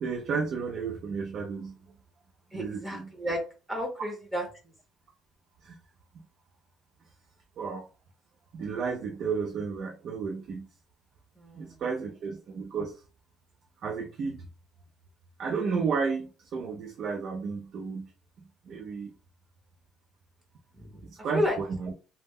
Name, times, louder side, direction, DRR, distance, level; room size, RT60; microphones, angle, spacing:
voice 1, 0.0-1.8 2.5-3.1 5.6-5.8 7.6-7.9 8.5-10.7 11.6-13.0 13.8-14.4 15.4-18.1 18.7-19.1 21.0-21.9, right 5 dB, 50° right, 1 dB, 0.4 m, -32 dB
voice 2, 2.5-3.4 3.7-4.4 11.4-11.8 20.8-20.9 21.3-21.6, equal, 10° right, 0 dB, 0.6 m, -31 dB
2.1 x 2.0 x 3.4 m, 0.34 s
cardioid pair, 145°, 0 cm